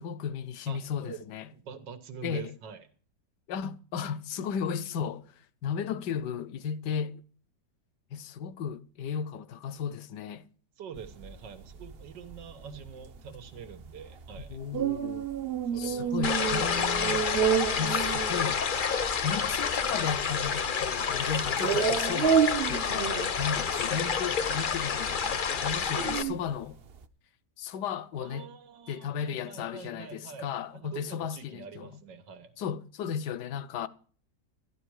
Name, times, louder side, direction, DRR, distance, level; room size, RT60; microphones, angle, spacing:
voice 1, 0.0-1.5 2.2-2.5 3.5-5.3 5.6-7.2 8.1-10.5 14.5-15.3 15.8-17.2 17.8-18.6 19.2-26.8 27.6-28.5 28.9-32.0 32.6-33.9, left 7 dB, 75° left, 1.4 m, -35 dB
voice 2, 0.7-1.2 1.5-2.9 10.8-14.6 15.7-16.1 16.4-17.0 28.1-32.5, right 7 dB, 85° right, 1.9 m, -45 dB
sound 1, 11.0-27.1, right 7 dB, 45° right, 0.8 m, -31 dB
sound 2, 16.2-26.2, left 6 dB, 45° left, 0.7 m, -29 dB
13.0 x 11.0 x 4.7 m
omnidirectional pair, 1.9 m